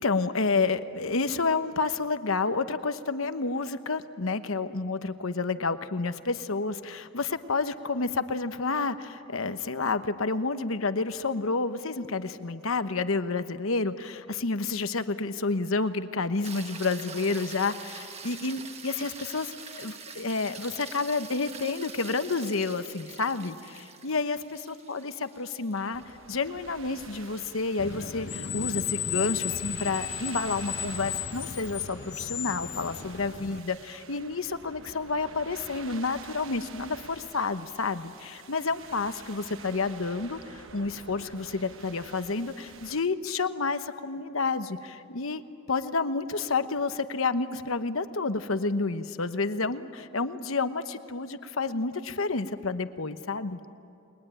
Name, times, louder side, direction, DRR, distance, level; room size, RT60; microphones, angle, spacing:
voice 1, 0.0-26.0 26.3-45.4 45.7-53.6, left 3 dB, 75° left, 10 dB, 1.1 m, -30 dB
sound 1, 16.4-28.8 33.3-33.4, right 5 dB, 30° right, 1.4 m, -45 dB
sound 2, 25.9-43.0, right 5 dB, 65° right, 1.2 m, -48 dB
Screech, 27.8-33.6, left 9 dB, 55° left, 0.8 m, -34 dB
30.0 x 22.0 x 9.1 m, 2.7 s
head